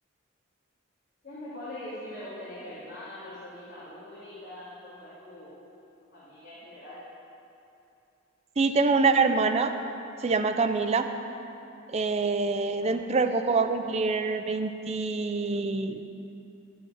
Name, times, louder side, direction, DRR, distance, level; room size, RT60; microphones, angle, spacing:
voice 1, 1.2-5.8 6.1-7.0 12.8-13.0, left 1 dB, 50° left, -12 dB, 2.3 m, -42 dB
voice 2, 8.6-9.7 10.2-11.1 11.9-16.0, right 4 dB, 30° right, 7 dB, 0.4 m, -25 dB
11.5 x 5.6 x 5.7 m, 2.8 s
head